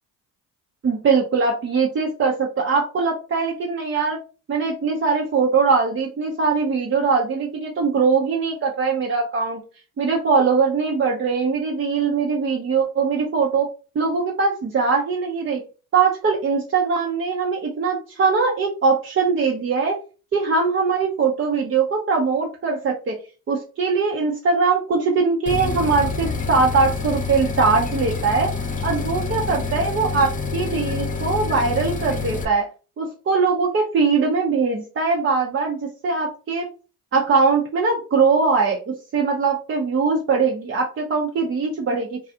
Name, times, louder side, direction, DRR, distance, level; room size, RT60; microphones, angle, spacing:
voice 1, 0.8-4.2 4.5-9.6 10.0-13.7 13.9-15.6 15.9-20.0 20.3-23.2 23.5-28.5 28.8-32.7 33.0-36.7 37.1-42.2, right 4 dB, 30° right, -1 dB, 0.6 m, -21 dB
sound 1, 25.5-32.5, left 4 dB, 20° left, 0.5 m, -27 dB
2.3 x 2.3 x 2.7 m, 0.36 s
hypercardioid pair, 60°, 43 cm